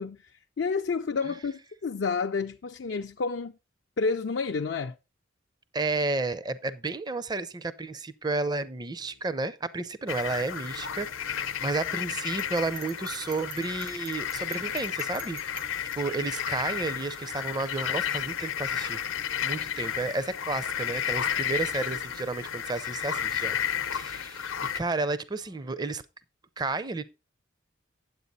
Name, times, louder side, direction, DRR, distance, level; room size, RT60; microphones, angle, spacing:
voice 1, 0.0-3.5 4.0-5.0, left 4 dB, 60° left, 0.4 m, -30 dB
voice 2, 5.7-15.6 15.9-19.0 19.4-23.6 23.9-26.0 26.6-27.0, right 3 dB, 20° right, 0.5 m, -32 dB
Speech, 8.9-9.5 10.6-11.4 12.6-13.3 14.5-15.2 16.4-17.1 18.1-18.9 19.9-20.6 21.7-22.4 23.3-24.2 25.3-26.0, equal, 90° right, 5.5 m, -64 dB
sound 1, 10.1-24.8, left 9 dB, 85° left, 0.8 m, -32 dB
Bell, 12.4-16.0, right 8 dB, 70° right, 1.2 m, -45 dB
9.4 x 7.8 x 4.0 m
head